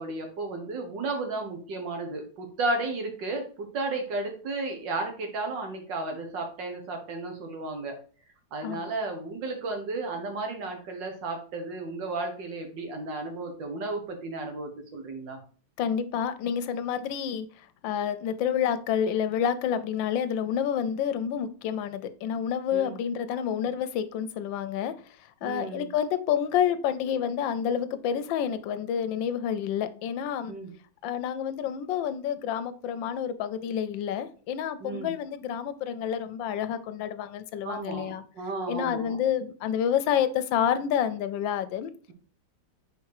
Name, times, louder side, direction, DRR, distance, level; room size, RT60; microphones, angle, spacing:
voice 1, 0.0-8.0 8.5-15.4 22.7-23.0 25.4-25.9 30.5-30.7 34.8-35.1 37.6-39.2, right 2 dB, 75° right, 4 dB, 2.0 m, -33 dB
voice 2, 15.8-17.5 17.8-24.9 25.4-30.5 31.0-38.2 38.7-41.9, left 8 dB, 85° left, 13 dB, 1.3 m, -29 dB
4.8 x 4.5 x 4.7 m, 0.40 s
omnidirectional pair, 2.0 m